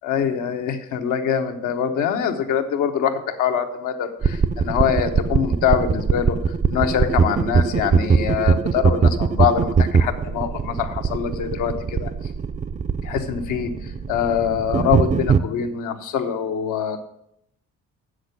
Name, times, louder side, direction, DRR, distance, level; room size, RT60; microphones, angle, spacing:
voice 1, 0.0-6.4 6.7-12.1 13.0-13.7 14.1-17.0, left 8 dB, 90° left, 6 dB, 1.1 m, -24 dB
sound 1, 4.2-15.4, right 5 dB, 25° right, 0.4 m, -21 dB
7.8 x 6.4 x 8.0 m, 0.77 s
cardioid pair, 90°, 30 cm